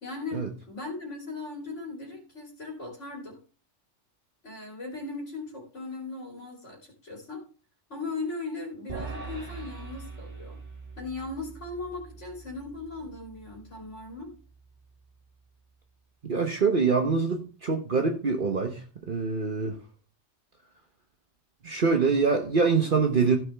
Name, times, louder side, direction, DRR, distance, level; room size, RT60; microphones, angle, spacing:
voice 1, 0.0-3.4 4.4-7.4 7.9-10.6 11.0-14.3, left 3 dB, 90° left, -2 dB, 3.7 m, -38 dB
sound 1, 8.9-15.3, right 4 dB, 75° right, 3.1 m, -43 dB
voice 2, 16.2-19.8 21.6-23.4, right 4 dB, 50° right, 4 dB, 1.2 m, -25 dB
15.5 x 6.9 x 3.5 m, 0.37 s
omnidirectional pair, 1.2 m